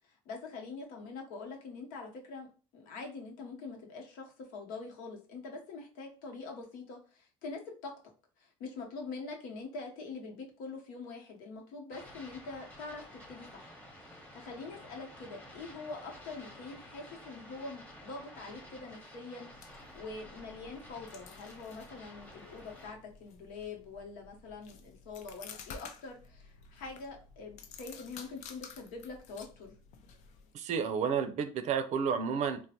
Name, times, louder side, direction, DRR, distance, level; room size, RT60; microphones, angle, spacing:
voice 1, 0.3-2.5 2.7-7.9 8.4-13.7 14.0-29.7, left 3 dB, 80° left, 1 dB, 0.9 m, -44 dB
sound 1, 11.9-22.9, left 1 dB, 10° left, 1.0 m, -52 dB
sound 2, 19.5-30.5, left 6 dB, 60° left, 0.5 m, -52 dB
voice 2, 30.5-32.6, right 6 dB, 55° right, 8 dB, 0.5 m, -31 dB
3.7 x 2.1 x 2.8 m, 0.37 s
supercardioid pair, 100°, 14 cm